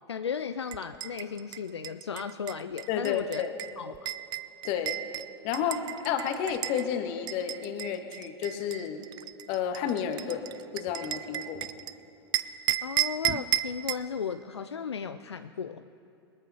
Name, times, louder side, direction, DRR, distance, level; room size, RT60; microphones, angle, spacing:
voice 1, 0.1-3.4 3.8-4.1 12.8-15.9, left 6 dB, 80° left, 10 dB, 0.4 m, -35 dB
sound 1, 0.7-6.8 7.3-11.9 12.3-14.1, right 13 dB, 30° right, 0.4 m, -34 dB
voice 2, 2.9-3.5 4.6-5.0 5.4-9.0 9.5-11.7, left 8 dB, 45° left, 7 dB, 1.4 m, -31 dB
21.5 x 13.5 x 2.8 m, 2.8 s
figure-of-eight pair, 90°, 14 cm